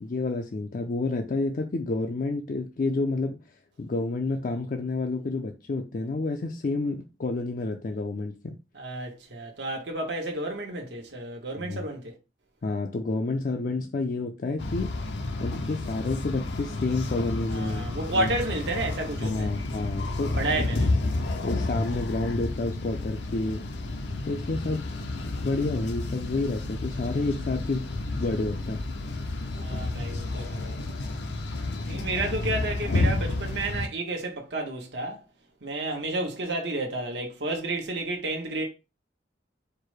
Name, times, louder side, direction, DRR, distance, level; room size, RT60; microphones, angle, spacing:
voice 1, 0.0-3.4 3.8-8.6 11.6-11.8 12.6-14.9 15.4-17.8 18.1-18.4 19.2-20.7 21.4-23.6 24.2-24.8 25.2-27.8 28.2-28.8 31.7-32.2, left 3 dB, 50° left, 0.4 m, -29 dB
voice 2, 8.7-12.1 17.5-19.5 20.3-20.9 29.5-30.8 31.9-35.2 35.6-38.6, right 2 dB, 75° right, 1.0 m, -31 dB
sound 1, 14.6-33.9, left 2 dB, 80° left, 0.7 m, -31 dB
4.6 x 2.1 x 4.7 m
head